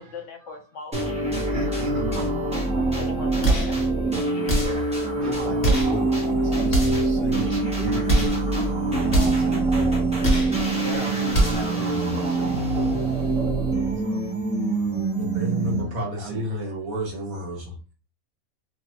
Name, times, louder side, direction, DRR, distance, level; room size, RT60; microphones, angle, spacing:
voice 1, 0.0-1.4 2.9-3.8, left 4 dB, 60° left, 1.0 m, -39 dB
sound 1, 0.9-16.0, right 2 dB, 5° right, 0.7 m, -24 dB
voice 2, 1.3-2.5 4.0-8.5 8.9-13.0 13.8-14.3 14.8-15.2 15.6-15.9 16.2-16.5, right 4 dB, 40° right, 1.0 m, -36 dB
sound 2, 3.4-3.8 4.5-4.9 5.6-6.0 6.7-7.1 8.0-8.4 9.1-9.5 10.2-10.6 11.3-11.7, right 1 dB, 25° left, 0.9 m, -22 dB
voice 3, 15.2-17.8, equal, 75° right, 1.4 m, -30 dB
2.9 x 2.2 x 3.0 m
omnidirectional pair, 1.5 m